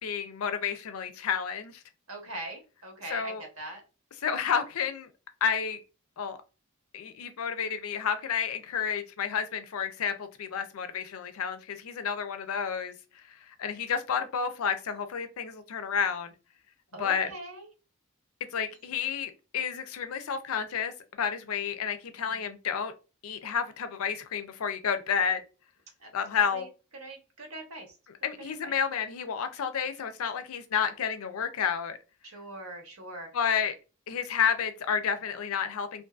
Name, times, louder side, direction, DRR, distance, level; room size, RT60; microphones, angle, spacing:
voice 1, 0.0-1.8 3.1-3.4 4.2-5.1 5.4-5.8 6.2-6.4 6.9-12.9 13.5-16.3 17.0-17.3 18.5-22.9 23.2-25.4 26.1-26.6 28.2-32.0 33.3-33.7 34.1-36.0, left 7 dB, 90° left, 0.5 m, -30 dB
voice 2, 2.1-3.8 16.9-17.7 18.7-18.9 22.3-22.5 26.0-26.1 26.4-26.7 27.0-27.9 28.4-28.7 30.5-30.7 32.2-33.6, right 1 dB, 85° right, 1.0 m, -42 dB
2.5 x 2.5 x 2.3 m
head